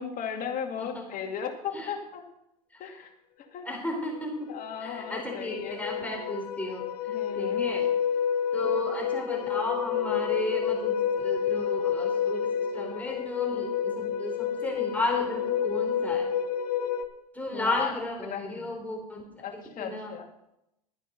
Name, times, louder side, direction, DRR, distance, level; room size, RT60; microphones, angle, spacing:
voice 1, 0.0-2.3 2.8-3.1 3.5-3.7 4.5-5.8 7.1-7.7 17.5-18.8 19.4-20.3, left 7 dB, 45° left, 3 dB, 2.4 m, -36 dB
voice 2, 3.6-4.5 4.8-7.9 8.5-16.3 17.3-19.2 19.5-20.1, left 1 dB, 5° left, 0 dB, 4.0 m, -34 dB
sound 1, 4.2-4.3 4.5-17.0, left 8 dB, 75° left, 1.2 m, -29 dB
13.0 x 10.0 x 5.4 m, 0.84 s
hypercardioid pair, 80°, 20 cm